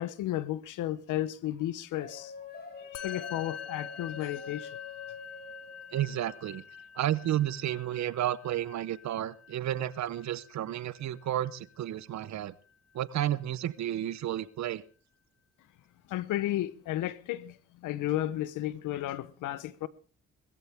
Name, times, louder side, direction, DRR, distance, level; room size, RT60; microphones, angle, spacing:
voice 1, 0.0-2.3 2.8-4.7 16.1-19.9, left 13 dB, 85° left, 0.9 m, -33 dB
sound 1, 1.9-6.4, left 5 dB, 30° left, 4.9 m, -46 dB
Musical instrument, 2.9-12.5, left 8 dB, 55° left, 0.9 m, -46 dB
voice 2, 5.9-6.6 7.0-12.5 12.9-14.8, right 12 dB, 65° right, 0.9 m, -32 dB
20.5 x 14.0 x 3.5 m
cardioid pair, 90°, 30 cm